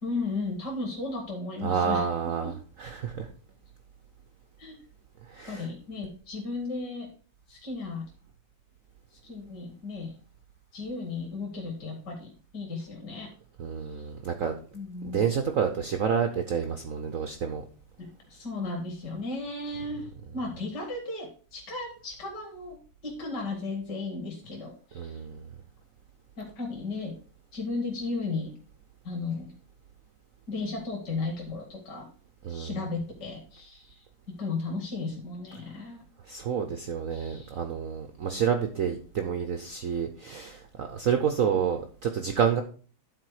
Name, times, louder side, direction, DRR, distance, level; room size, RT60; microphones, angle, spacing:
voice 1, 0.0-2.1 2.4-2.5 4.6-4.8 5.5-7.1 7.5-8.0 9.1-10.1 10.7-13.3 13.8-14.1 14.7-15.2 18.0-25.2 26.4-27.1 27.5-28.5 29.0-29.5 30.5-32.1 32.5-34.0 34.4-36.0 37.1-37.6, left 3 dB, 50° left, -1 dB, 2.2 m, -35 dB
voice 2, 1.6-3.3 5.3-5.7 13.6-14.5 15.0-17.6 20.3-20.4 24.9-25.5 32.4-32.8 36.3-42.6, right 7 dB, 90° right, 6 dB, 0.7 m, -29 dB
10.5 x 4.3 x 4.8 m, 0.41 s
omnidirectional pair, 2.3 m